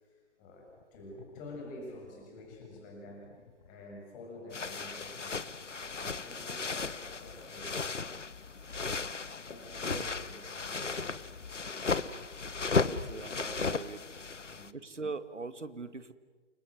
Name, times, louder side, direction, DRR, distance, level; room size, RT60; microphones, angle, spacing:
voice 1, 0.0-3.3 3.7-5.6 5.9-7.9 9.5-11.3 14.5-14.8, left 1 dB, 20° left, 0 dB, 7.0 m, -49 dB
sound 1, 0.7-6.8, left 7 dB, 40° left, 2.5 m, -57 dB
sound 2, 4.5-14.7, left 4 dB, 80° left, 1.2 m, -35 dB
voice 2, 12.7-14.1 14.7-16.1, right 3 dB, 80° right, 12 dB, 2.1 m, -41 dB
29.0 x 26.0 x 7.9 m, 1.4 s
figure-of-eight pair, 135°, 36 cm